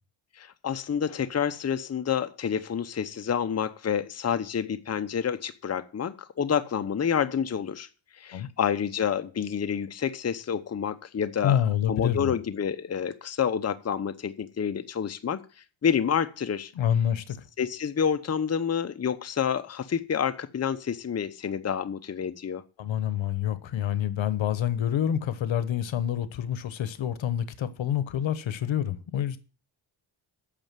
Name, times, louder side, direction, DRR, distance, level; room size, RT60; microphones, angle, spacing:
voice 1, 0.4-7.9 8.2-15.4 15.8-16.7 17.6-22.6, left 7 dB, 35° left, 0.8 m, -28 dB
voice 2, 11.4-12.3 16.7-17.4 22.8-29.4, left 10 dB, 75° left, 1.1 m, -27 dB
8.9 x 6.6 x 7.4 m
cardioid pair, 80°, 46 cm